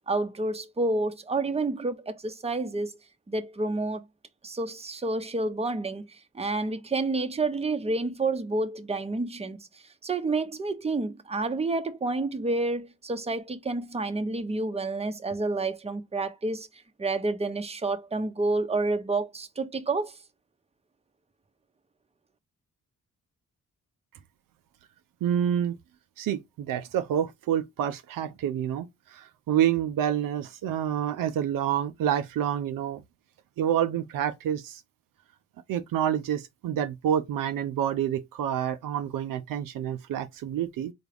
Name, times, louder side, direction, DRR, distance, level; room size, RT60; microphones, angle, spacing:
voice 1, 0.1-3.0 3.3-4.0 4.4-9.6 10.0-16.7 17.0-20.1, right 2 dB, 20° right, 0.7 m, -29 dB
voice 2, 25.2-25.8 26.2-33.0 33.6-34.8 35.7-40.9, right 10 dB, 75° right, 0.5 m, -28 dB
4.0 x 2.3 x 3.3 m
supercardioid pair, 50°, 33 cm